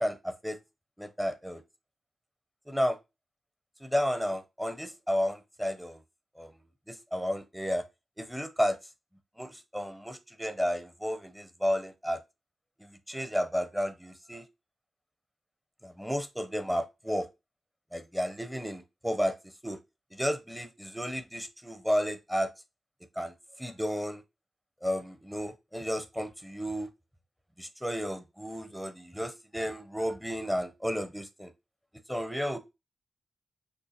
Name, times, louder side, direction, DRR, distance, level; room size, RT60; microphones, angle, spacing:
voice 1, 0.0-0.6 1.0-1.6 2.7-3.0 3.8-6.0 6.4-6.5 6.9-7.8 8.2-8.8 9.4-12.2 12.8-14.4 15.8-17.3 17.9-19.4 19.6-19.8 20.1-22.5 23.2-23.3 23.6-24.2 24.8-26.9 27.6-31.5 32.1-32.6, equal, 5° right, 9 dB, 0.6 m, -32 dB
6.6 x 2.7 x 2.8 m, 0.24 s
wide cardioid pair, 145°, 0 cm